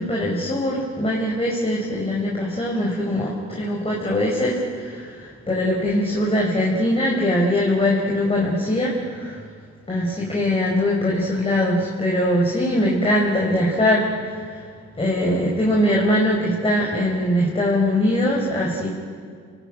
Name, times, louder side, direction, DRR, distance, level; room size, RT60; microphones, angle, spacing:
voice 1, 0.0-9.4 9.9-14.6 15.0-18.9, left 1 dB, 20° left, -2 dB, 5.0 m, -22 dB
27.5 x 18.5 x 9.1 m, 2.1 s
cardioid pair, 90°, 30 cm